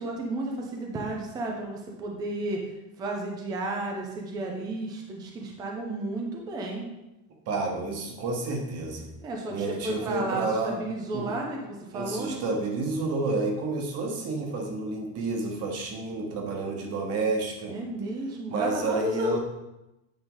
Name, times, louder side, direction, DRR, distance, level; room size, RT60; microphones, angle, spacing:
voice 1, 0.0-2.7 3.0-6.9 9.2-12.5 17.7-19.4, right 2 dB, 10° right, 0 dB, 0.4 m, -32 dB
voice 2, 7.5-9.1 9.5-10.8 11.1-11.3 11.9-17.7 18.5-19.4, right 3 dB, 30° right, 2 dB, 1.1 m, -30 dB
9.0 x 4.9 x 3.8 m, 0.96 s
cardioid pair, 175°, 48 cm